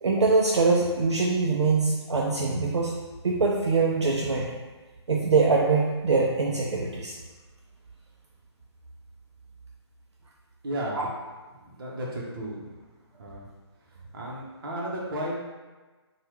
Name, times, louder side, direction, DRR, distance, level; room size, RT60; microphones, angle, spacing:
voice 1, 0.0-3.0 3.2-4.5 5.1-7.2 10.9-11.0, right 4 dB, 80° right, -2 dB, 0.4 m, -23 dB
voice 2, 10.6-11.1 11.6-12.7 13.2-13.5 14.1-15.4, right 1 dB, 50° right, -4 dB, 0.9 m, -33 dB
2.9 x 2.3 x 3.2 m, 1.3 s
figure-of-eight pair, 145°, 14 cm